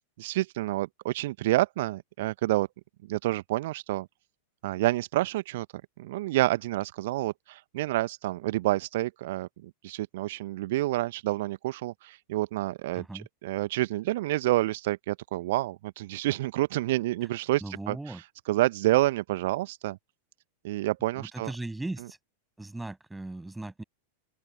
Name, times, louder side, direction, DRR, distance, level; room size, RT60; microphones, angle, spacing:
voice 1, 0.2-2.7 3.1-4.1 4.6-5.7 6.0-20.0 20.6-21.5, right 17 dB, 55° right, 0.9 m, -28 dB
voice 2, 12.9-13.3 17.6-18.2 21.2-22.2 22.6-23.8, right 2 dB, 5° right, 7.4 m, -38 dB
open air
figure-of-eight pair, 90°, 0 cm